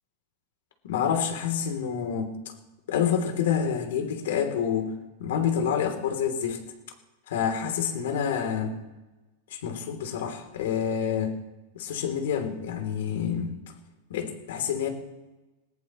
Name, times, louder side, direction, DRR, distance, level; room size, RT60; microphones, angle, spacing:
voice 1, 0.8-2.4 2.9-4.9 5.2-6.6 7.3-8.8 9.5-11.4 11.7-13.5 14.1-14.9, left 8 dB, 70° left, 5 dB, 3.1 m, -28 dB
20.0 x 20.0 x 3.1 m, 1.1 s
supercardioid pair, 165°, 0 cm